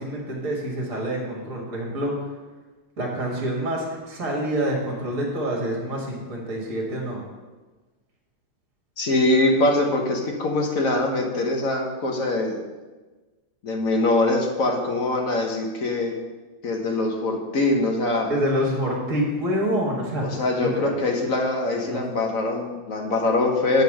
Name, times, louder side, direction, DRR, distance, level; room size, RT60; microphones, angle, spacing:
voice 1, 0.0-2.3 3.0-7.2 18.3-20.9 21.9-22.0, equal, 45° right, -1 dB, 1.9 m, -27 dB
voice 2, 9.0-12.6 13.6-16.1 16.6-18.3 20.2-23.8, left 2 dB, 50° left, 1 dB, 1.3 m, -23 dB
8.0 x 5.4 x 6.4 m, 1.3 s
omnidirectional pair, 2.1 m